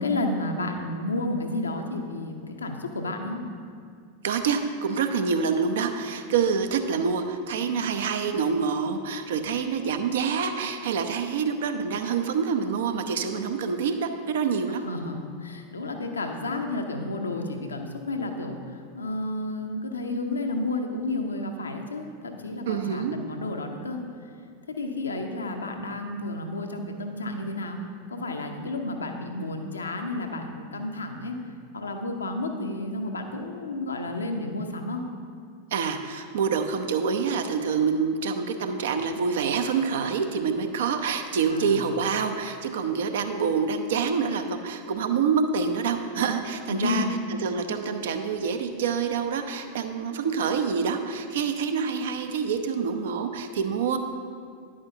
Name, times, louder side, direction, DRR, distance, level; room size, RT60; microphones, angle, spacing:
voice 1, 0.0-3.4 14.8-18.6 18.9-24.0 24.7-27.8 28.1-31.4 31.7-35.0 41.5-41.9 46.7-47.2, left 2 dB, 75° left, 4 dB, 0.8 m, -31 dB
voice 2, 4.2-14.9 22.7-23.2 35.7-47.1 47.4-54.0, right 6 dB, 60° right, 7 dB, 0.6 m, -26 dB
10.5 x 8.6 x 2.7 m, 2.2 s
figure-of-eight pair, 90°, 0 cm